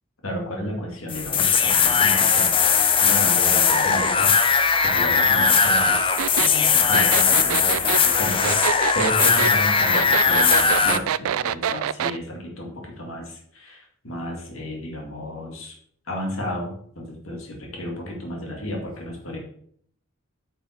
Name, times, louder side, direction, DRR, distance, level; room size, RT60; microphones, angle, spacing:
voice 1, 0.2-2.6 3.0-15.8 16.1-19.4, equal, 75° left, 0 dB, 2.3 m, -33 dB
sound 1, 1.1-11.0, left 6 dB, 25° left, 0.6 m, -19 dB
sound 2, 6.2-12.2, right 10 dB, 80° right, 0.3 m, -26 dB
9.3 x 5.4 x 4.5 m, 0.63 s
head